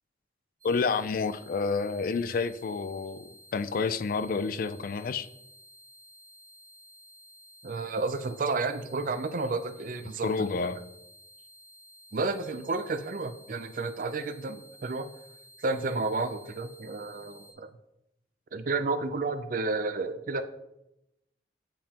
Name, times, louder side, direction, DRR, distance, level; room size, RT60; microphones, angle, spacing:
voice 1, 0.6-5.3 10.2-10.8, left 4 dB, 50° left, 0.3 m, -29 dB
sound 1, 0.6-17.5, equal, 20° right, 1.2 m, -54 dB
voice 2, 7.6-10.5 12.1-15.1 15.6-17.7 18.5-20.4, right 3 dB, 50° right, 0.4 m, -31 dB
8.7 x 5.5 x 2.9 m
head